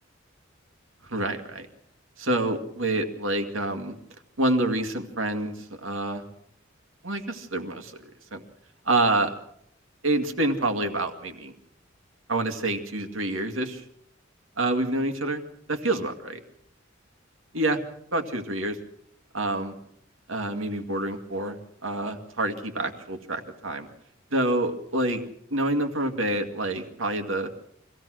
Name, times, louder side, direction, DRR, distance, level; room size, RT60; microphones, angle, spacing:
voice 1, 1.0-1.7 2.2-3.9 4.4-6.2 7.0-8.4 8.9-9.3 10.0-11.5 12.3-13.8 14.6-15.4 15.7-16.4 17.5-17.8 18.1-18.8 19.3-19.7 20.3-23.9 24.3-25.2 25.5-27.5, right 2 dB, 80° right, 6 dB, 2.1 m, -27 dB
24.5 x 16.5 x 6.4 m, 0.71 s
head